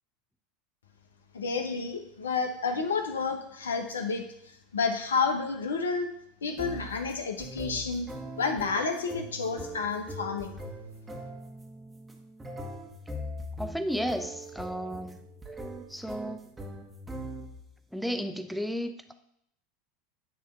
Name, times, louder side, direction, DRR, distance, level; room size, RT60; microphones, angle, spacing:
voice 1, 1.3-4.2 4.7-6.1 6.4-8.1 8.4-10.6, left 5 dB, 85° left, 5 dB, 1.0 m, -30 dB
sound 1, 6.6-17.7, right 1 dB, 15° right, 1.3 m, -41 dB
voice 2, 13.6-15.2 15.9-16.5 17.9-19.1, equal, ahead, 8 dB, 0.7 m, -33 dB
9.7 x 3.3 x 5.6 m, 0.73 s
hypercardioid pair, 85°, 0 cm